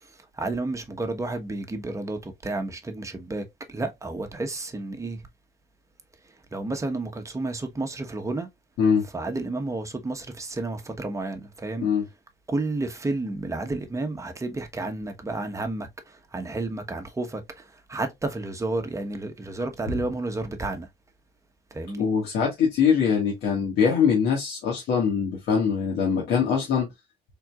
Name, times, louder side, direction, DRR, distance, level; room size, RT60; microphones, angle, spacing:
voice 1, 0.1-5.2 6.5-8.5 9.1-11.9 12.5-20.9 21.7-22.1, right 2 dB, 20° right, 1.0 m, -31 dB
voice 2, 22.0-26.9, left 6 dB, 75° left, 1.5 m, -23 dB
4.3 x 3.8 x 2.3 m
cardioid pair, 110°, 17 cm